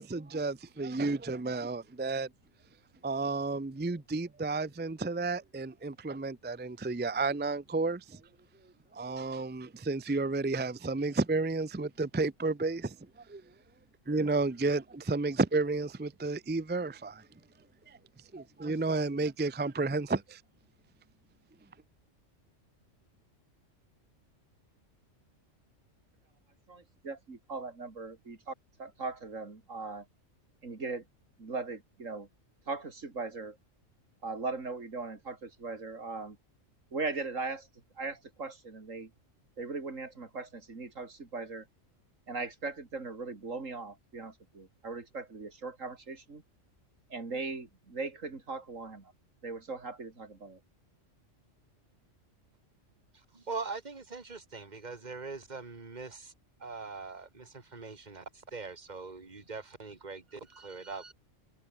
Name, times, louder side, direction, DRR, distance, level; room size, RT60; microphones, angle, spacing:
voice 1, 0.0-2.3 3.0-8.2 8.9-13.0 13.3-13.4 14.1-17.2 17.9-18.0 18.3-20.4, right 3 dB, 15° right, 0.4 m, -32 dB
voice 2, 26.7-30.1 30.6-31.0 31.4-32.3 32.7-33.6 34.2-36.4 36.9-37.7 38.0-39.1 39.6-41.7 42.3-46.4 47.1-49.1 49.4-50.6, right 3 dB, 90° right, 3.4 m, -39 dB
voice 3, 53.3-56.3 56.6-61.1, right 4 dB, 35° right, 2.2 m, -42 dB
omnidirectional pair, 1.3 m